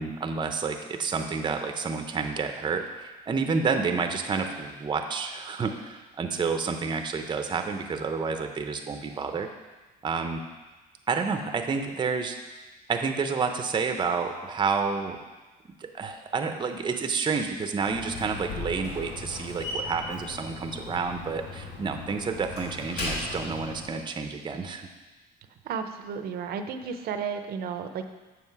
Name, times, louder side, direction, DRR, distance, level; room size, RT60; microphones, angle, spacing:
voice 1, 0.0-9.5 10.0-10.4 11.1-12.4 12.9-15.2 15.9-24.9, right 5 dB, 25° right, 5 dB, 0.7 m, -29 dB
Slam, 17.8-24.0, left 2 dB, 75° left, 2.4 m, -37 dB
voice 2, 25.6-28.1, right 6 dB, 65° right, 7 dB, 0.7 m, -33 dB
7.6 x 6.3 x 4.7 m, 1.2 s
cardioid pair, 110°, 17 cm